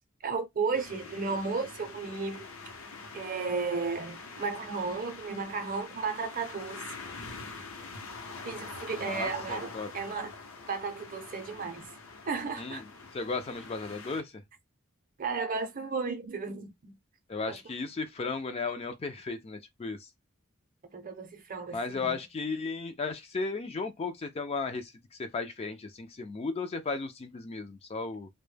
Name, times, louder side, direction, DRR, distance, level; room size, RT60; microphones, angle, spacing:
voice 1, 0.2-2.5 3.1-6.9 8.4-10.3 10.7-11.8 12.3-12.8 15.2-17.0 17.5-17.6 20.9-22.2, right 4 dB, 40° right, 0.6 m, -34 dB
sound 1, 0.7-14.2, left 4 dB, 70° left, 0.7 m, -45 dB
voice 2, 9.0-9.9 12.6-12.8 13.1-14.4 17.3-20.1 21.7-28.3, left 4 dB, 30° left, 0.3 m, -35 dB
2.1 x 2.1 x 3.2 m
head